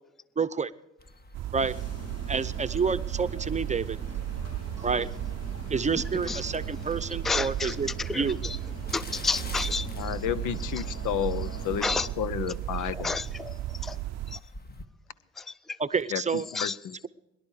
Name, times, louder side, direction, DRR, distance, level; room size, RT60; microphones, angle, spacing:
voice 1, 0.4-0.7 1.5-1.7 2.3-4.0 4.8-5.1 5.7-8.4 15.8-16.5, right 5 dB, 25° right, 12 dB, 0.7 m, -28 dB
sound 1, 1.0-14.9, left 2 dB, 30° left, 1.6 m, -50 dB
sound 2, 1.3-14.4, right 13 dB, 60° right, 0.5 m, -35 dB
sound 3, 1.6-12.1, left 1 dB, 55° left, 3.9 m, -43 dB
voice 2, 7.2-8.6 8.9-9.9 11.8-12.1 12.9-14.0 14.3-14.4 15.4-15.5 16.5-16.7, left 4 dB, ahead, 18 dB, 0.4 m, -31 dB
voice 3, 10.0-13.1 16.1-17.0, left 9 dB, 85° left, 18 dB, 0.8 m, -32 dB
22.5 x 11.0 x 4.8 m, 0.97 s
cardioid pair, 90°, 30 cm